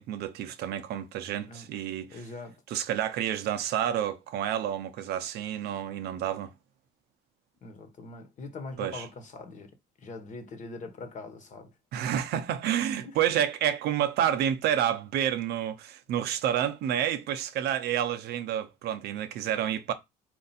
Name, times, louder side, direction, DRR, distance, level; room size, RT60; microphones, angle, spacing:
voice 1, 0.0-2.2 2.7-6.5 8.8-9.1 11.9-19.9, right 10 dB, 75° right, 0.7 m, -29 dB
voice 2, 2.1-2.6 7.6-9.7 10.0-11.7 13.0-13.2, left 3 dB, 45° left, 1.1 m, -42 dB
4.5 x 2.6 x 4.0 m
cardioid pair, 110°, 17 cm